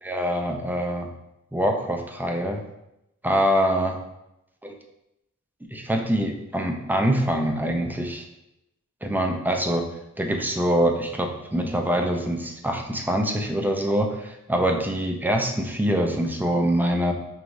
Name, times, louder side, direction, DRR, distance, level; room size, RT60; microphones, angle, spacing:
voice 1, 0.0-1.1 1.5-2.6 3.2-4.0 4.6-4.7 5.7-8.2 9.0-9.8 10.2-17.1, equal, 5° right, 2 dB, 0.5 m, -24 dB
4.7 x 3.0 x 2.6 m, 0.87 s
wide cardioid pair, 60°, 30 cm